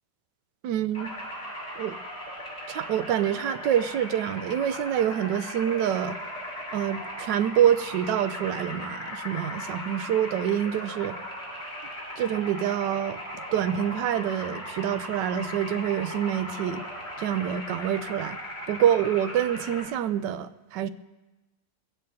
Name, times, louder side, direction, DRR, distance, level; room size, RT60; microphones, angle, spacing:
voice 1, 0.6-1.1 1.8-2.0 2.7-6.2 6.7-11.2 12.2-13.2 13.5-16.8 17.2-18.4 18.7-20.9, right 10 dB, 85° right, 1.3 m, -26 dB
sound 1, 0.9-19.8, equal, 35° left, 4.2 m, -38 dB
21.0 x 16.0 x 2.7 m
omnidirectional pair, 1.9 m